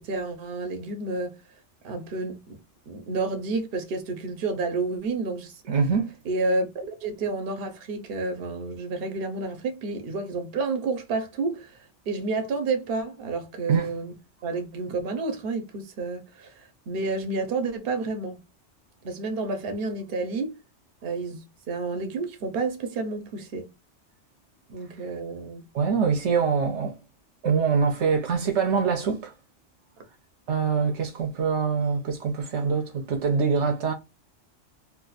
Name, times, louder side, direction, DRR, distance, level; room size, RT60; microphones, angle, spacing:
voice 1, 0.0-1.4 1.8-2.6 2.9-5.5 6.3-11.8 12.1-14.1 14.4-18.4 19.0-20.5 21.0-23.7 24.7-25.7, right 3 dB, 60° right, 0.9 m, -30 dB
voice 2, 5.7-6.1 13.7-13.9 25.7-27.0 27.4-29.3 30.5-33.9, right 5 dB, 75° right, 1.0 m, -24 dB
2.7 x 2.4 x 3.8 m
omnidirectional pair, 1.2 m